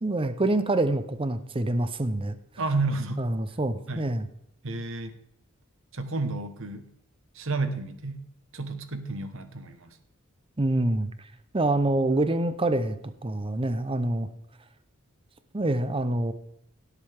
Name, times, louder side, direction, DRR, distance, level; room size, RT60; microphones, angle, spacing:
voice 1, 0.0-2.4 3.2-4.2 10.6-11.1 11.5-13.0 13.2-14.3 15.5-16.3, right 2 dB, 25° right, 11 dB, 0.7 m, -26 dB
voice 2, 2.6-3.3 3.9-4.1 4.6-5.1 5.9-6.9 7.3-8.3 8.5-10.0, right 3 dB, 65° right, 9 dB, 1.3 m, -31 dB
17.0 x 8.3 x 3.5 m, 0.74 s
head